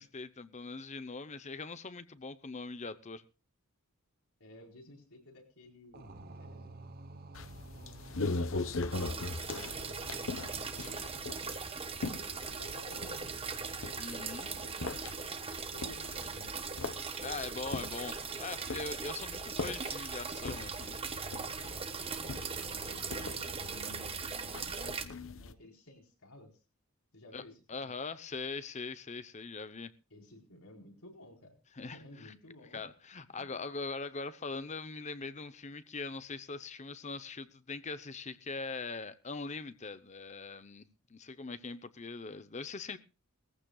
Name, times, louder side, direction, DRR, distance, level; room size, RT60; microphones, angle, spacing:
voice 1, 0.0-3.2 14.0-14.5 17.2-21.0 27.3-27.4 27.7-29.9 31.8-32.0 32.2-32.3 32.7-43.0, left 4 dB, 35° left, 0.8 m, -41 dB
voice 2, 4.4-6.7 7.8-9.6 10.1-11.4 11.9-13.6 14.0-15.0 15.7-16.8 22.7-24.2 24.6-26.5 27.1-27.9 30.1-32.8 33.4-33.5, left 1 dB, 85° left, 4.4 m, -55 dB
sound 1, 5.9-15.8, right 2 dB, 45° right, 1.0 m, -54 dB
sound 2, 7.4-25.5, left 3 dB, 60° left, 0.9 m, -41 dB
sound 3, 8.9-25.1, right 5 dB, 25° right, 1.1 m, -40 dB
21.0 x 15.0 x 2.3 m
head